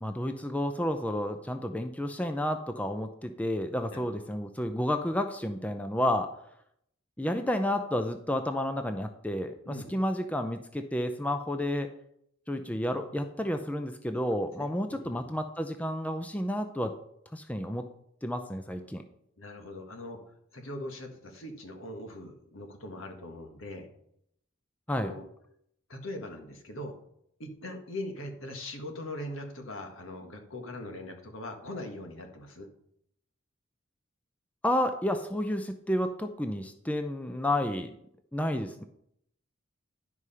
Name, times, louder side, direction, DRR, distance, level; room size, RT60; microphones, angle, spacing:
voice 1, 0.0-6.3 7.2-11.9 12.5-16.9 17.3-17.9 18.2-19.0 24.9-25.1 34.6-37.9 38.3-38.8, left 1 dB, 5° left, 7 dB, 0.5 m, -31 dB
voice 2, 14.6-15.3 19.4-20.2 20.5-23.9 25.0-25.3 25.9-27.0 27.4-32.7, left 1 dB, 70° left, 4 dB, 1.7 m, -41 dB
11.0 x 4.9 x 5.6 m, 0.72 s
head